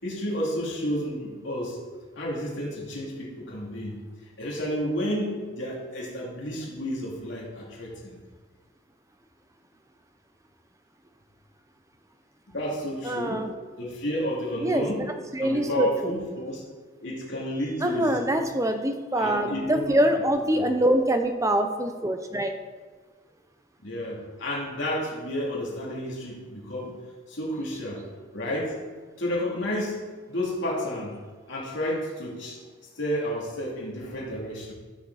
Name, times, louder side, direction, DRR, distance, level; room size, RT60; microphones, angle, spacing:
voice 1, 0.0-1.8 2.1-4.0 4.4-8.2 12.5-13.4 13.8-15.0 15.4-16.6 17.0-18.4 19.2-20.0 20.5-20.6 23.8-26.9 27.3-28.0 28.3-28.8 29.2-30.0 30.3-31.1 31.5-32.6 32.9-34.7, equal, 55° left, -4 dB, 2.9 m, -31 dB
voice 2, 13.0-13.5 14.6-14.9 15.3-16.1 17.8-22.5, right 1 dB, 15° right, 6 dB, 0.6 m, -24 dB
13.5 x 7.1 x 4.2 m, 1.4 s
head